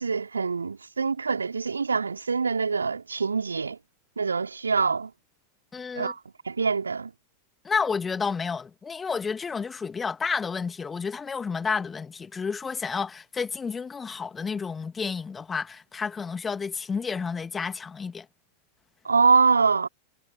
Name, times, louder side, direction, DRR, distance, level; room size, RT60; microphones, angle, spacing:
voice 1, 0.0-3.8 4.2-5.1 6.0-6.2 6.5-7.1 19.0-19.9, right 5 dB, 75° right, 3.5 m, -24 dB
voice 2, 5.7-6.1 7.6-18.3, left 5 dB, 15° left, 2.0 m, -30 dB
figure-of-eight pair, 90°, 0 cm